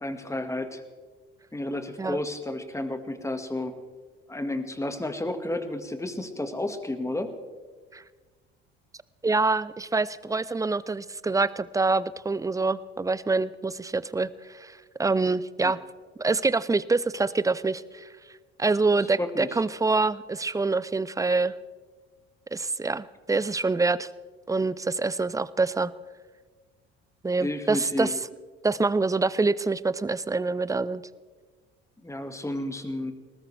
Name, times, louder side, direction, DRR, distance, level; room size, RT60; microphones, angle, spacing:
voice 1, 0.0-0.8 1.5-3.8 4.3-7.3 15.6-15.7 19.2-19.6 27.4-28.1 32.0-33.1, left 1 dB, 10° left, 8 dB, 1.8 m, -32 dB
voice 2, 9.2-15.8 16.2-18.1 18.6-21.5 22.5-24.1 24.5-25.9 27.2-28.1 28.6-31.0, right 3 dB, 10° right, 18 dB, 0.5 m, -26 dB
19.5 x 18.5 x 3.4 m, 1.5 s
hypercardioid pair, 60°, 30 cm